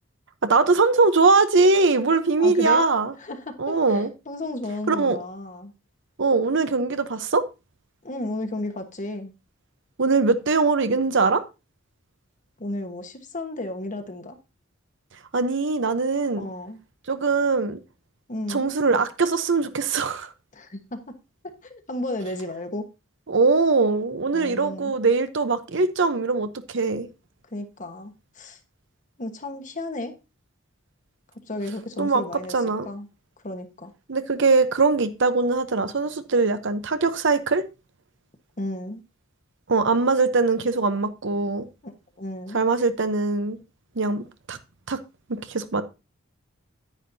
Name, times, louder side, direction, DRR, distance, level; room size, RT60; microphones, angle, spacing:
voice 1, 0.4-3.1 3.6-4.1 4.9-5.2 6.2-7.4 10.0-11.4 15.3-16.4 17.1-17.8 18.5-20.3 23.3-27.1 32.0-32.2 32.5-32.9 34.1-37.6 39.7-41.7 42.5-43.6 44.0-44.6 44.9-45.0 45.3-45.8, right 4 dB, 65° right, 0.9 m, -21 dB
voice 2, 2.4-2.8 3.2-5.7 8.0-9.3 12.6-14.4 16.3-16.8 18.3-18.7 20.5-21.0 21.6-22.8 24.3-24.9 27.5-28.6 29.2-30.1 31.5-32.6 32.8-33.1 33.4-33.9 38.6-39.0 41.8-41.9 42.2-42.6, left 1 dB, 40° left, 1.3 m, -33 dB
9.9 x 9.5 x 2.7 m
head